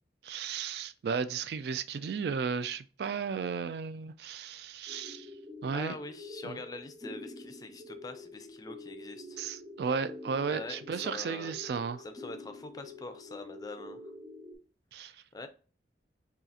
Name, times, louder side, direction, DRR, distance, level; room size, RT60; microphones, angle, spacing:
voice 1, 0.2-5.3 5.6-5.9 6.4-6.6 9.4-12.0 14.9-15.2, right 6 dB, 65° right, 0.3 m, -34 dB
sound 1, 4.9-14.6, left 2 dB, 15° right, 1.1 m, -47 dB
voice 2, 5.7-9.4 10.5-11.5 12.0-14.0 15.0-15.5, left 3 dB, 20° left, 0.4 m, -44 dB
5.6 x 2.4 x 2.7 m
head